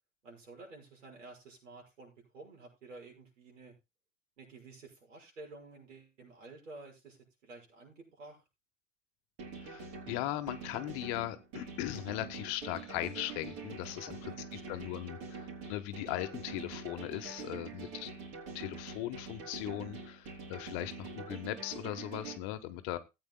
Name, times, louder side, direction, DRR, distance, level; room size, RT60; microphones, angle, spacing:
voice 1, 0.2-3.7 4.4-8.4 13.9-14.9 15.2-15.3 17.4-17.9, right 3 dB, 75° right, 1 dB, 6.3 m, -52 dB
sound 1, 9.4-22.4, right 4 dB, 45° right, 4.1 m, -45 dB
voice 2, 9.6-14.3 14.7-18.1 18.5-23.0, left 15 dB, 45° left, 10 dB, 1.2 m, -39 dB
19.0 x 8.9 x 2.2 m, 0.25 s
figure-of-eight pair, 85°, 38 cm